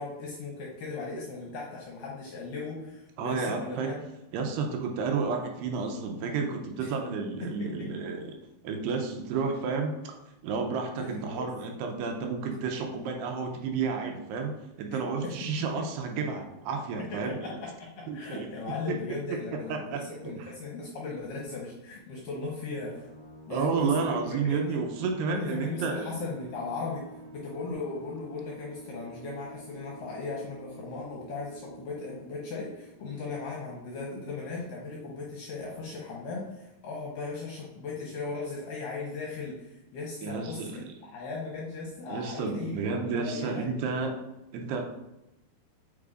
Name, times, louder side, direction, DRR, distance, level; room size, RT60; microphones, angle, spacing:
voice 1, 0.0-4.0 6.8-6.9 7.4-7.9 10.9-11.5 14.9-15.3 15.6-15.8 17.0-23.0 23.5-24.2 24.4-24.8 25.3-27.1 27.3-40.8 41.1-43.7, left 3 dB, 75° left, -3 dB, 2.1 m, -37 dB
voice 2, 3.2-3.9 4.3-8.4 8.6-10.2 10.4-14.5 14.8-17.6 18.1-18.5 19.7-20.0 20.4-20.5 23.5-26.1 40.2-40.9 42.1-44.2 44.5-44.8, right 5 dB, 80° right, 3 dB, 2.6 m, -31 dB
sound 1, 22.4-33.7, right 2 dB, 45° left, 1.4 m, -49 dB
8.2 x 4.7 x 2.5 m, 0.92 s
omnidirectional pair, 4.9 m